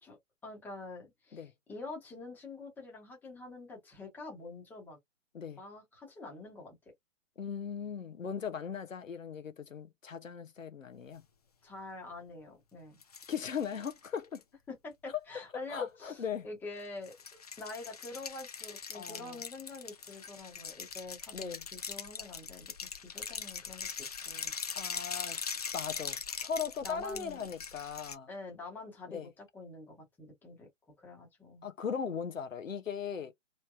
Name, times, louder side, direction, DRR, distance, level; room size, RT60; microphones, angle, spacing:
voice 1, 0.0-5.0 5.6-6.8 11.6-13.0 14.7-24.5 26.8-27.5 28.3-30.7 31.0-31.7, left 3 dB, 5° left, 0.9 m, -46 dB
voice 2, 7.4-11.2 13.3-14.4 15.7-16.5 18.9-19.4 21.3-21.6 24.8-25.4 25.7-28.3 29.1-29.3 31.6-33.3, left 6 dB, 85° left, 0.7 m, -38 dB
sound 1, 13.0-14.4 17.0-28.2, left 6 dB, 35° left, 0.4 m, -41 dB
3.1 x 3.0 x 2.3 m
figure-of-eight pair, 130°, 38 cm